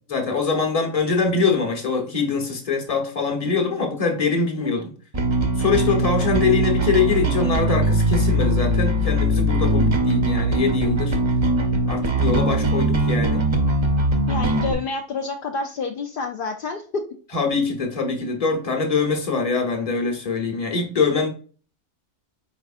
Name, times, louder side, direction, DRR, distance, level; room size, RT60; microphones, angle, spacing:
voice 1, 0.1-4.9 5.6-11.2 11.9-13.4 17.3-21.3, left 4 dB, 30° left, 0.9 m, -23 dB
Bass guitar, 5.1-14.7, right 1 dB, 35° right, 0.5 m, -21 dB
voice 2, 14.3-17.0, left 4 dB, 65° left, 0.5 m, -28 dB
4.5 x 4.2 x 2.4 m
omnidirectional pair, 1.4 m